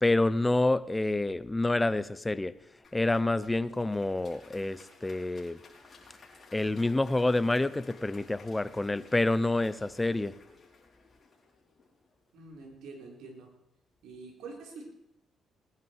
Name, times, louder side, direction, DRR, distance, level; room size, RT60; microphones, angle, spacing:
voice 1, 0.0-2.5 2.9-5.6 6.5-10.3, left 2 dB, 15° left, 16 dB, 0.7 m, -28 dB
Applause, 2.8-12.2, left 4 dB, 40° left, 4.9 m, -56 dB
voice 2, 12.3-13.5 14.0-14.8, right 3 dB, 85° right, 0 dB, 4.1 m, -46 dB
20.5 x 11.0 x 4.7 m, 0.80 s
cardioid pair, 90°, 0 cm